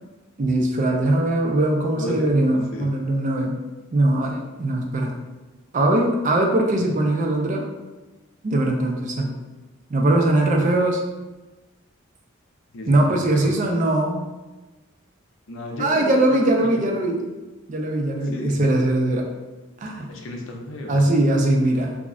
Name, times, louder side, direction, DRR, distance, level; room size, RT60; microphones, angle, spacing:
voice 1, 0.4-3.6 3.9-5.2 5.7-7.6 8.4-9.3 9.9-11.0 12.9-14.2 15.8-17.2 17.7-19.3 19.8-20.1 20.9-22.0, right 1 dB, 35° right, 1 dB, 0.3 m, -21 dB
voice 2, 1.9-2.3 2.7-2.9 6.7-6.8 12.7-13.6 15.5-16.8 18.3-18.6 20.1-21.0, left 1 dB, 65° left, 1 dB, 0.5 m, -33 dB
2.4 x 2.0 x 3.5 m, 1.1 s
head